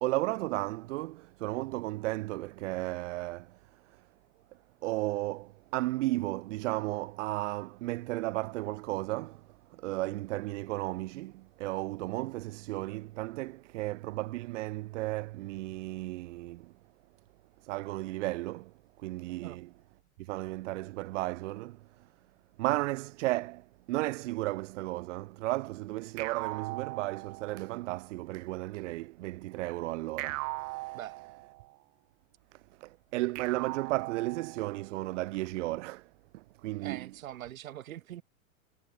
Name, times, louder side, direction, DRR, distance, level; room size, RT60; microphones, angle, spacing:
voice 1, 0.0-3.6 3.9-4.0 4.8-16.7 17.6-19.7 20.2-21.9 22.6-31.0 32.5-37.1, right 19 dB, 65° right, 0.9 m, -34 dB
sound 1, 26.2-27.8 30.2-31.8 33.3-34.9, right 24 dB, 40° right, 2.3 m, -39 dB
voice 2, 36.8-38.2, right 12 dB, 80° right, 3.2 m, -43 dB
supercardioid pair, 135°, 40 cm